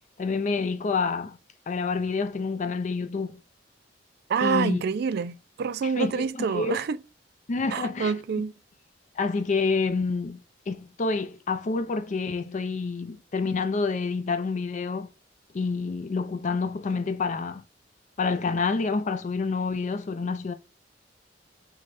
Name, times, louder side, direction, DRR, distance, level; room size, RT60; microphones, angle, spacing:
voice 1, 0.2-1.4 1.7-3.4 4.4-4.8 5.8-6.8 7.5-8.1 9.2-15.1 15.5-17.6 18.2-20.5, left 4 dB, 40° left, 0.4 m, -28 dB
voice 2, 4.3-7.0 7.7-8.5, right 6 dB, 60° right, 0.3 m, -27 dB
4.7 x 2.2 x 4.1 m
head